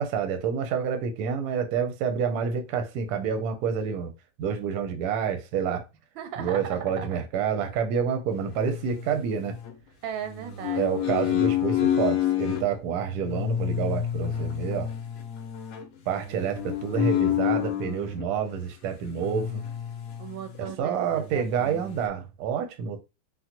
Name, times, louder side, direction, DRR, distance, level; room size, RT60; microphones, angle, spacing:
voice 1, 0.0-4.1 4.4-5.8 6.4-9.6 10.8-14.9 16.1-19.6 20.6-23.0, right 7 dB, 70° right, 1.0 m, -28 dB
voice 2, 6.1-7.2 10.0-10.9 11.2-11.7 20.2-22.0, right 8 dB, 85° right, 1.4 m, -38 dB
sound 1, 8.5-9.7 10.2-12.7 13.2-18.3 19.1-20.3 20.6-20.7 21.1-22.1, left 11 dB, 70° left, 0.8 m, -29 dB
3.5 x 2.0 x 2.8 m
omnidirectional pair, 2.1 m